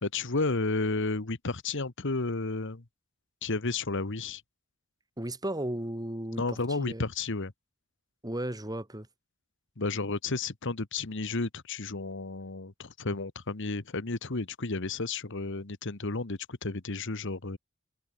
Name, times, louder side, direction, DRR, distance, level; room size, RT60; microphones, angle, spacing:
voice 1, 0.0-2.8 3.4-4.4 6.3-7.5 9.8-17.6, left 3 dB, 65° left, 1.5 m, -32 dB
voice 2, 5.2-7.0 8.2-9.1, right 1 dB, 20° right, 3.1 m, -35 dB
head